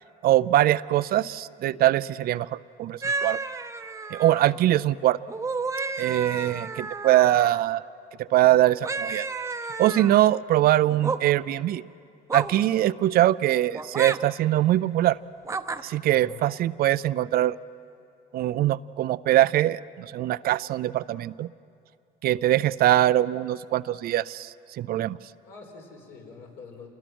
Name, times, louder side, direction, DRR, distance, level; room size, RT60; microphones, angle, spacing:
voice 1, 0.2-2.5 2.8-3.4 4.1-5.2 6.0-7.8 8.2-9.3 9.8-11.8 12.3-15.2 15.8-17.6 18.3-21.5 22.2-25.2, right 14 dB, 65° right, 17 dB, 0.5 m, -22 dB
sound 1, 3.0-4.6 5.3-7.7 8.8-10.2 10.9-11.2 12.3-12.6 13.7-14.2 15.4-15.8, right 4 dB, 15° right, 0.8 m, -31 dB
voice 2, 16.0-16.5 25.4-26.9, left 5 dB, 70° left, 0 dB, 5.3 m, -46 dB
28.0 x 20.5 x 6.2 m, 2.5 s
cardioid pair, 110°, 17 cm